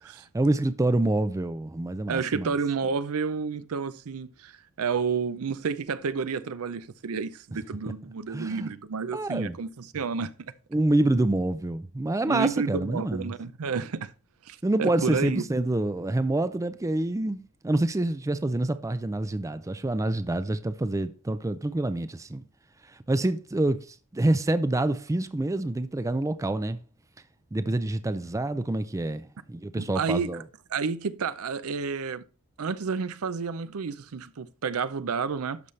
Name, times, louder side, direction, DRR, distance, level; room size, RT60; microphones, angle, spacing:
voice 1, 0.3-2.5 8.3-8.7 9.1-9.6 10.7-13.3 14.6-22.4 22.8-26.8 27.5-30.4, right 2 dB, 15° right, 0.4 m, -27 dB
voice 2, 2.1-10.5 12.2-14.1 14.5-15.4 29.7-30.4 30.7-32.2 32.6-35.6, right 5 dB, 70° right, 0.5 m, -30 dB
12.0 x 5.5 x 3.2 m
head